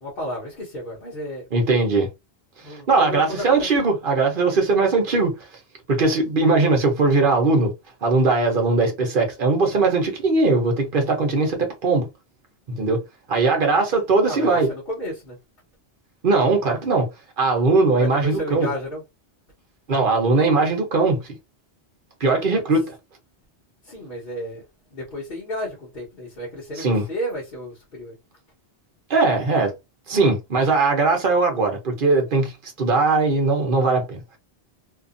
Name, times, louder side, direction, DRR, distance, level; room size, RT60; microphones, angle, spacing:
voice 1, 0.0-1.4 2.6-3.7 14.2-15.4 17.9-19.0 23.8-24.6 24.9-28.1, equal, 55° left, 1.2 m, -32 dB
voice 2, 1.5-2.1 2.9-5.4 5.9-7.7 8.0-12.1 12.7-13.0 13.3-14.7 16.2-17.1 17.4-18.7 19.9-21.3 22.2-22.9 26.8-27.1 29.1-29.7 30.1-34.2, right 3 dB, 55° right, 0.9 m, -20 dB
2.8 x 2.5 x 2.5 m
omnidirectional pair, 1.1 m